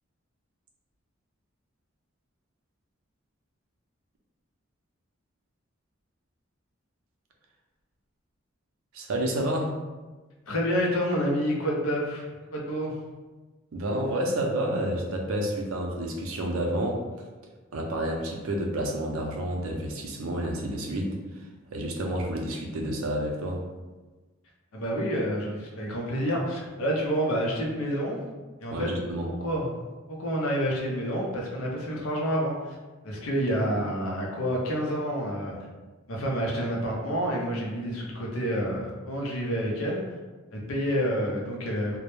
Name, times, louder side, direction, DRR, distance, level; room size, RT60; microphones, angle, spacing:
voice 1, 8.9-9.8 13.7-17.0 17.7-21.2 21.7-23.6 28.7-29.3, right 1 dB, 90° right, 1 dB, 0.5 m, -29 dB
voice 2, 10.5-12.3 12.5-12.9 24.7-28.2 28.6-28.9 29.2-29.8 30.1-32.8 33.0-35.5 36.1-40.0 40.5-42.0, equal, 90° left, -2 dB, 0.6 m, -28 dB
2.2 x 2.0 x 3.0 m, 1.2 s
head